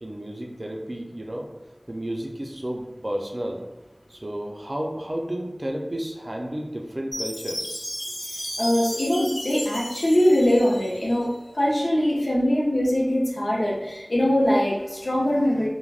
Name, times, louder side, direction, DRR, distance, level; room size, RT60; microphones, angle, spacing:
voice 1, 0.0-1.5 1.9-3.6 4.1-7.9, right 1 dB, 50° right, 1 dB, 0.4 m, -32 dB
Chime, 7.1-11.2, equal, 40° left, 0.6 m, -34 dB
voice 2, 8.6-15.7, equal, 85° left, -4 dB, 0.5 m, -22 dB
3.3 x 2.1 x 2.3 m, 1.0 s
wide cardioid pair, 40°, 0 cm